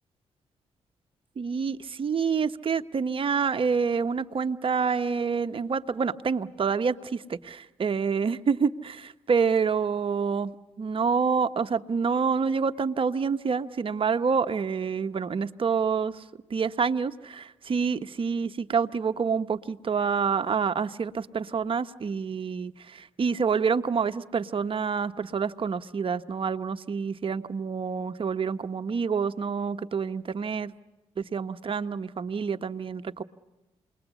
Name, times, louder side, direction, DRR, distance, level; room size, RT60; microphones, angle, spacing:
voice 1, 1.4-16.2 16.5-30.7 31.2-33.2, right 5 dB, 45° right, 9 dB, 1.0 m, -27 dB
28.0 x 21.5 x 8.2 m, 1.1 s
cardioid pair, 65°, 12 cm